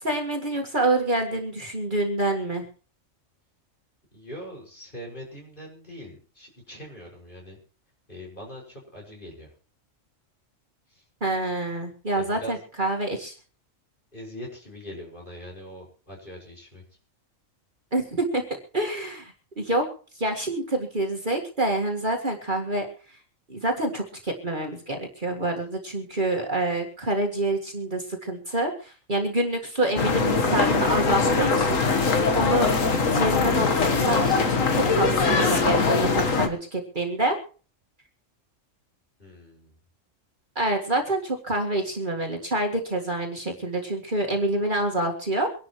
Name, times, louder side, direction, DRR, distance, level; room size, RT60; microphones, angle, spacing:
voice 1, 0.0-2.6 11.2-13.3 17.9-18.4 18.7-19.9 20.2-22.9 23.5-32.8 33.2-37.4 40.6-45.5, right 1 dB, 40° right, 1 dB, 2.0 m, -27 dB
voice 2, 4.1-7.6 8.1-9.5 10.9-11.0 12.2-12.6 14.1-16.8 39.2-39.8, equal, 40° left, -2 dB, 6.3 m, -42 dB
sound 1, 30.0-36.5, left 4 dB, 85° left, 1.9 m, -22 dB
24.5 x 11.5 x 3.1 m, 0.39 s
omnidirectional pair, 1.3 m